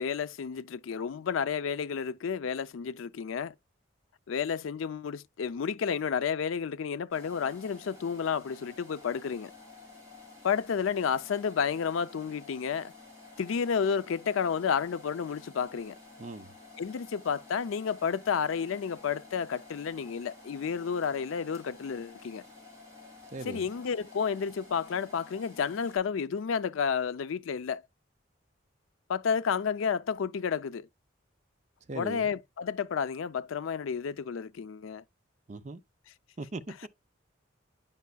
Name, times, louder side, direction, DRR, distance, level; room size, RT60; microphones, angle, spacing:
voice 1, 0.0-3.5 4.3-9.5 10.4-12.9 13.4-16.0 16.8-22.4 23.4-27.8 29.1-30.9 31.9-35.0, left 6 dB, 90° left, 0.4 m, -31 dB
sound 1, 7.1-26.0, left 3 dB, 15° right, 3.4 m, -52 dB
voice 2, 16.2-16.5 23.3-23.6 31.9-32.3 35.5-35.8 36.4-36.9, right 2 dB, 35° right, 0.5 m, -39 dB
9.3 x 5.3 x 2.2 m
head